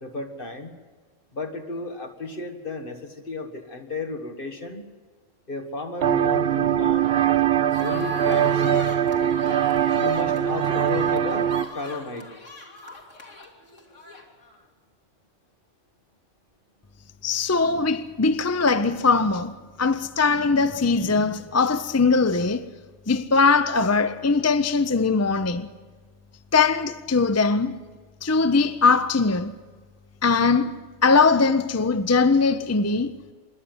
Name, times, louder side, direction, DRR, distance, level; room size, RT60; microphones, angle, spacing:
voice 1, 0.0-0.7 1.3-4.9 5.5-7.3 7.8-8.9 9.9-12.3, left 3 dB, 45° left, 2.0 m, -33 dB
sound 1, 6.0-11.7, right 9 dB, 55° right, 0.9 m, -22 dB
sound 2, 7.7-14.6, left 3 dB, 80° left, 2.9 m, -41 dB
voice 2, 17.2-22.7 23.1-25.7 26.5-27.8 28.2-29.5 30.2-33.1, left 4 dB, 20° left, 0.4 m, -21 dB
25.5 x 11.0 x 9.5 m
omnidirectional pair, 1.3 m